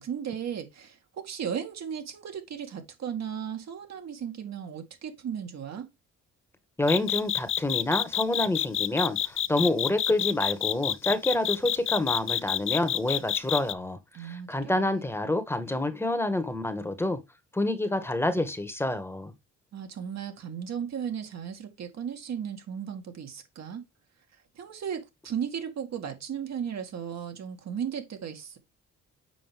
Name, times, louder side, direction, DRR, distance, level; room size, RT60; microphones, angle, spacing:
voice 1, 0.0-5.9 14.1-15.1 19.7-23.8 24.6-28.6, right 8 dB, 60° right, 2.2 m, -36 dB
voice 2, 6.8-17.2 17.5-19.3, left 1 dB, 10° left, 1.5 m, -28 dB
sound 1, 6.9-13.7, left 10 dB, 45° left, 0.5 m, -28 dB
7.6 x 5.1 x 3.5 m
cardioid pair, 90°, 30 cm